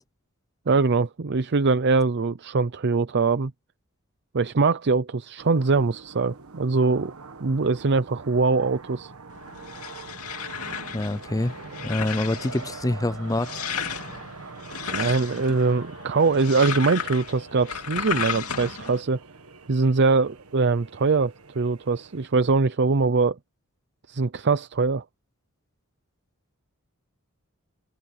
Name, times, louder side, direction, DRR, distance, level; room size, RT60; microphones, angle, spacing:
voice 1, 0.7-3.5 4.3-7.1 7.4-9.1 14.9-19.2 19.7-23.4 24.1-25.0, right 4 dB, 55° right, 0.6 m, -22 dB
sound 1, 5.4-22.3, right 4 dB, 80° right, 1.5 m, -43 dB
sound 2, 9.3-19.0, left 7 dB, 90° left, 2.6 m, -34 dB
voice 2, 10.9-11.6 11.8-13.5 15.0-15.2, left 1 dB, 15° left, 0.6 m, -26 dB
head